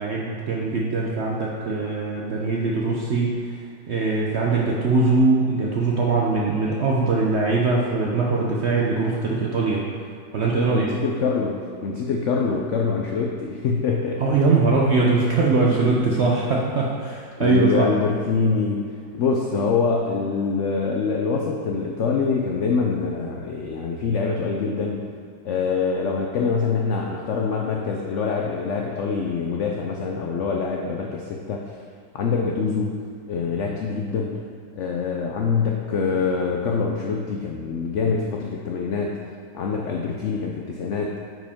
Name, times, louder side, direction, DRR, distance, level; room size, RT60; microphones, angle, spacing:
voice 1, 0.0-3.6 3.9-9.9 10.3-11.0 14.2-17.9, right 3 dB, 65° right, -3 dB, 0.7 m, -21 dB
voice 2, 10.7-14.2 17.4-18.9 19.2-25.0 25.4-31.6 32.1-32.9 33.3-34.4 34.7-39.2 39.5-41.1, left 5 dB, 75° left, 0 dB, 0.6 m, -25 dB
9.4 x 4.9 x 3.6 m, 2.2 s
omnidirectional pair, 1.9 m